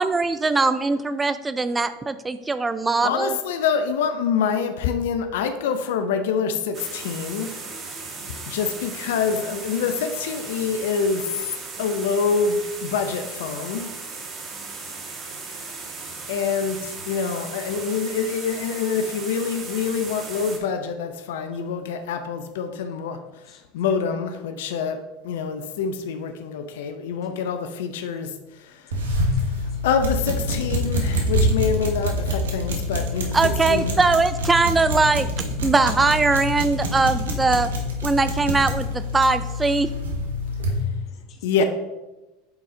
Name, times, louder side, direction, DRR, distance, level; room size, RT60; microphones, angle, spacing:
voice 1, 0.0-3.4 33.3-35.3 35.6-37.7 38.0-39.9, right 3 dB, 15° right, 12 dB, 0.4 m, -21 dB
voice 2, 3.0-7.7 8.5-11.5 11.8-13.9 15.6-15.8 16.3-23.2 23.5-28.9 29.8-33.9 41.4-41.6, left 6 dB, 75° left, 8 dB, 0.5 m, -26 dB
sound 1, 6.7-20.6, right 4 dB, 35° right, 1.6 m, -36 dB
voice 3, 7.7-8.1 14.7-14.8 15.2-15.4 23.5-23.6 24.6-24.7 27.2-27.4 28.7-28.8 29.2-29.3 29.7-29.8 41.1-41.6, left 8 dB, 45° left, 6 dB, 1.1 m, -42 dB
sound 2, 28.9-40.8, left 1 dB, 85° right, 1.2 m, -26 dB
8.8 x 4.2 x 3.7 m, 1.1 s
hypercardioid pair, 85°, 0 cm